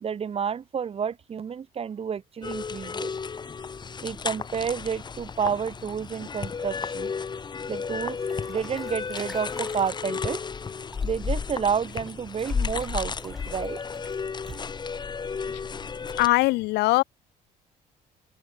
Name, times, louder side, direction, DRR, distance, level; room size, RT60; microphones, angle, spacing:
voice 1, 0.0-3.1 4.0-7.1 7.7-8.2 8.5-10.4 11.0-13.8, right 7 dB, 35° right, 1.1 m, -30 dB
sound 1, 2.4-16.3, left 5 dB, 25° left, 0.9 m, -33 dB
Breathing / Bathtub (filling or washing) / Splash splatter, 8.2-10.1 10.7-14.7, equal, ahead, 7.8 m, -48 dB
voice 2, 16.1-17.0, left 21 dB, 90° left, 0.7 m, -21 dB
open air
cardioid pair, 110°, 17 cm